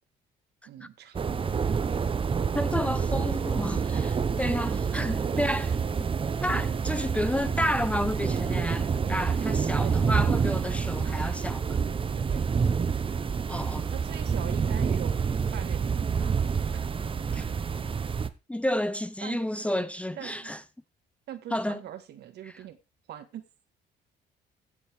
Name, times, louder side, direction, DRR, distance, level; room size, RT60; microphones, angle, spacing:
voice 1, 0.7-2.1 9.8-10.0 12.1-12.4 13.9-15.2 15.5-16.5 16.7-16.8 19.2-19.9 20.2-20.6 21.3-22.8 23.1-23.4, right 11 dB, 70° right, 1.8 m, -43 dB
sound 1, 1.1-18.3, right 6 dB, 30° right, 0.9 m, -28 dB
voice 2, 2.5-5.7 6.4-11.8 13.5-13.9 17.3-17.5 18.5-20.6 21.5-21.8, left 1 dB, 5° left, 0.7 m, -31 dB
15.5 x 7.1 x 3.6 m
cardioid pair, 95°, 18 cm